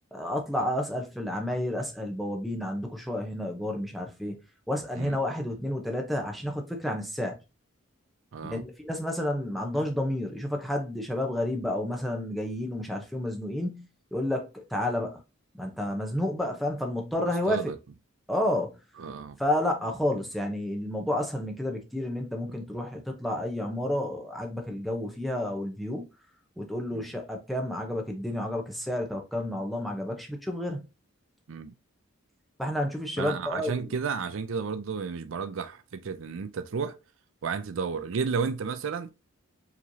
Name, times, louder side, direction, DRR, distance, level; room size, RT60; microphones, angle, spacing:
voice 1, 0.1-4.4 4.7-7.4 8.4-15.2 15.5-17.7 18.3-18.8 19.4-26.1 26.6-30.9 32.6-33.9, left 1 dB, ahead, 0.7 m, -30 dB
voice 2, 8.3-8.6 17.5-17.8 19.0-19.4 26.9-27.1 31.5-31.7 33.2-36.9 37.4-39.1, right 5 dB, 65° right, 0.4 m, -32 dB
5.0 x 3.1 x 2.7 m
head